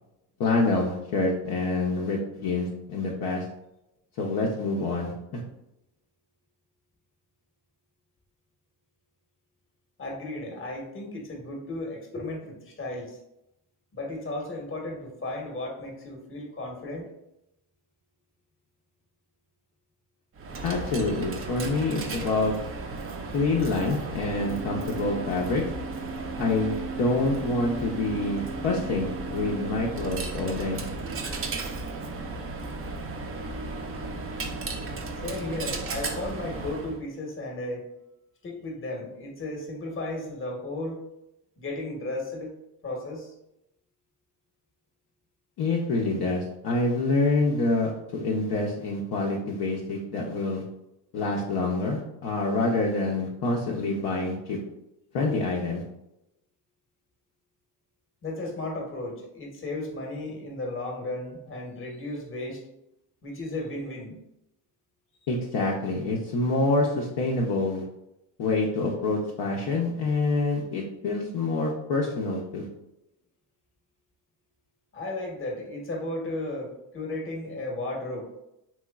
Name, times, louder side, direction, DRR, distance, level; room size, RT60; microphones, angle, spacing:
voice 1, 0.4-3.4 4.2-5.4 20.6-22.5 23.3-25.6 26.4-30.8 45.6-50.6 51.1-54.6 55.1-55.8 65.3-67.8 68.4-72.7, left 2 dB, 50° left, -2 dB, 0.7 m, -27 dB
voice 2, 10.0-13.2 13.9-17.1 35.2-37.9 38.4-41.0 41.6-42.5 42.8-43.3 58.2-62.6 63.2-64.2 74.9-78.3, left 2 dB, 25° left, 0 dB, 1.0 m, -34 dB
Coin (dropping), 20.3-37.0, right 3 dB, 30° right, 0.5 m, -34 dB
3.1 x 3.0 x 2.3 m, 0.84 s
supercardioid pair, 80°, 48 cm